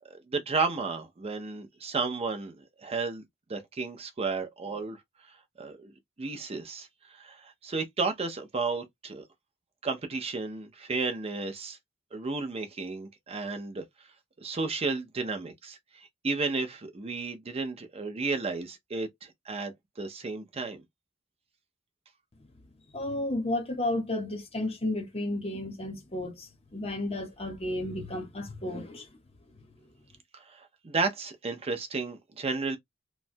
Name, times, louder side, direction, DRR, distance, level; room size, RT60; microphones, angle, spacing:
voice 1, 0.1-2.6 2.8-3.2 3.5-5.0 5.6-5.9 6.2-9.2 9.8-11.8 12.1-13.9 14.4-20.8 30.3-32.8, right 4 dB, 30° right, 0.5 m, -33 dB
voice 2, 22.9-29.1, left 1 dB, 30° left, 0.8 m, -32 dB
3.0 x 2.2 x 2.5 m
head